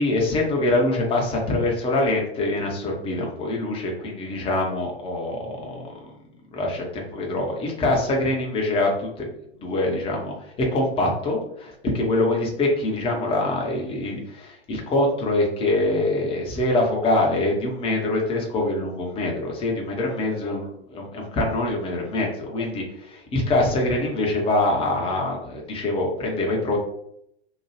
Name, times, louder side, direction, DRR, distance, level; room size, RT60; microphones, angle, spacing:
voice 1, 0.0-5.9 6.5-9.3 9.6-26.8, left 2 dB, 15° left, -1 dB, 0.7 m, -24 dB
2.8 x 2.2 x 3.1 m, 0.75 s
figure-of-eight pair, 100°, 33 cm